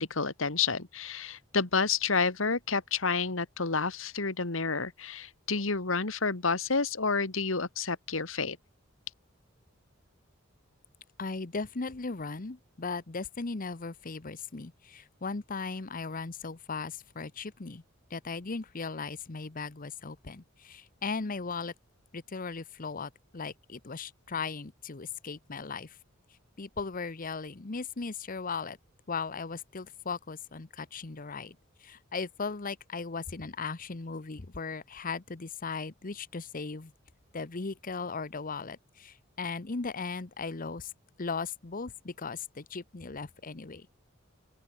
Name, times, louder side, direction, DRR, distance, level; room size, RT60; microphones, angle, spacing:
voice 1, 0.0-8.6, left 4 dB, 70° left, 1.9 m, -30 dB
voice 2, 11.2-17.8 18.1-21.7 22.1-26.0 26.6-28.8 29.1-36.9 37.3-40.9 41.2-43.9, left 4 dB, 45° left, 0.9 m, -37 dB
open air
head